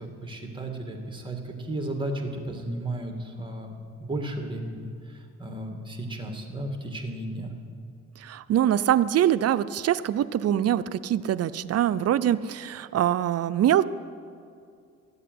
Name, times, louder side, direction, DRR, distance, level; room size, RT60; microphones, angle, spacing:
voice 1, 0.0-1.4 1.7-3.7 4.0-7.5, right 1 dB, 15° right, 3 dB, 2.1 m, -34 dB
voice 2, 8.2-13.9, right 11 dB, 55° right, 15 dB, 0.5 m, -24 dB
13.5 x 8.1 x 9.4 m, 2.4 s
cardioid pair, 90°, 30 cm